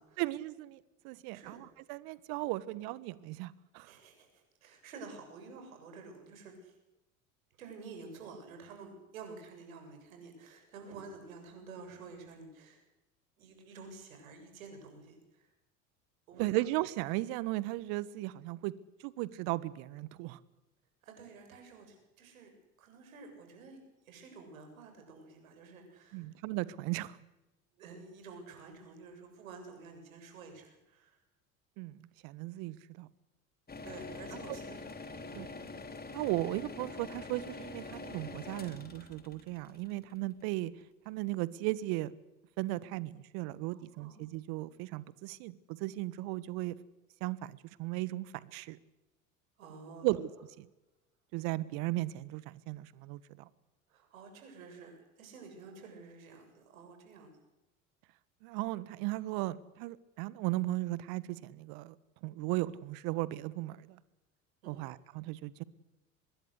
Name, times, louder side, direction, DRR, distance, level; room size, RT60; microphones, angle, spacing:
voice 1, 0.2-3.9 16.4-18.7 19.0-20.4 26.1-27.2 31.8-33.1 34.3-34.4 35.3-35.5 36.1-40.7 41.0-42.1 42.6-46.7 47.2-48.8 50.0-50.3 51.3-53.5 58.4-61.9 62.2-64.0 64.7-65.6, right 18 dB, 60° right, 19 dB, 1.4 m, -36 dB
voice 2, 3.8-6.8 7.6-12.8 13.4-15.5 16.3-16.7 21.0-22.5 22.8-26.3 27.8-31.2 33.8-35.4 43.7-44.2 49.6-50.1 53.9-57.3 64.6-64.8, right 4 dB, 75° right, 5 dB, 7.7 m, -50 dB
sound 1, 33.7-40.6, left 3 dB, 20° left, 3.7 m, -45 dB
25.0 x 21.5 x 8.2 m, 0.98 s
hypercardioid pair, 70°, 41 cm